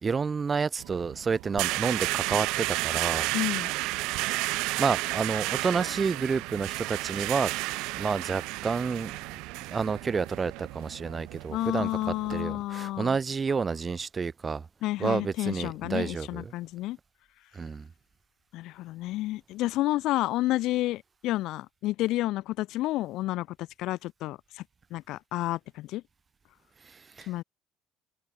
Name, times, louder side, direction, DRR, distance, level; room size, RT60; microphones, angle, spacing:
voice 1, 0.0-3.3 4.8-7.5 7.9-9.2 9.7-11.9 12.3-14.7 15.0-16.4 17.5-17.9 26.9-27.3, right 5 dB, 35° right, 2.8 m, -29 dB
sound 1, 0.8-12.4, right 23 dB, 80° right, 1.7 m, -32 dB
voice 2, 3.3-3.7 11.5-13.2 14.8-17.0 18.5-24.6 24.9-26.0 27.3-27.4, left 17 dB, 75° left, 2.6 m, -30 dB
open air
supercardioid pair, 75°, 0 cm